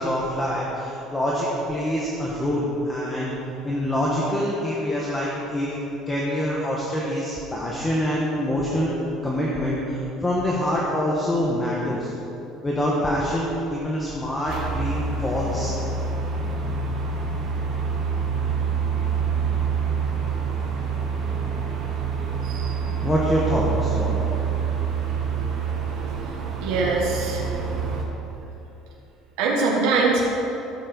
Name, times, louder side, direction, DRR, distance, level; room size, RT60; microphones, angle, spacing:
voice 1, 0.0-3.4 3.6-5.8 6.1-8.9 9.2-12.1 12.6-15.7 23.0-24.3, equal, 15° left, -5 dB, 1.5 m, -25 dB
sound 1, 14.5-28.0, right 5 dB, 55° right, 2.0 m, -26 dB
voice 2, 26.6-27.4 29.4-30.2, right 3 dB, 80° right, -3 dB, 1.7 m, -22 dB
13.5 x 7.5 x 5.4 m, 3.0 s
cardioid pair, 140°, 0 cm